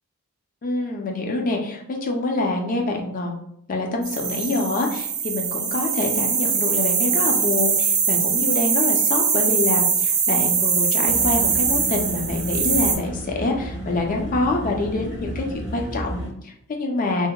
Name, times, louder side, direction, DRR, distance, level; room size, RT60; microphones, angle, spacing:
voice 1, 0.6-3.4 3.7-17.3, left 2 dB, 35° left, 2 dB, 0.4 m, -26 dB
sound 1, 4.0-13.0, right 6 dB, 45° right, 0.5 m, -22 dB
sound 2, 11.1-16.3, right 1 dB, 50° left, 1.2 m, -32 dB
2.8 x 2.1 x 2.2 m, 0.73 s
head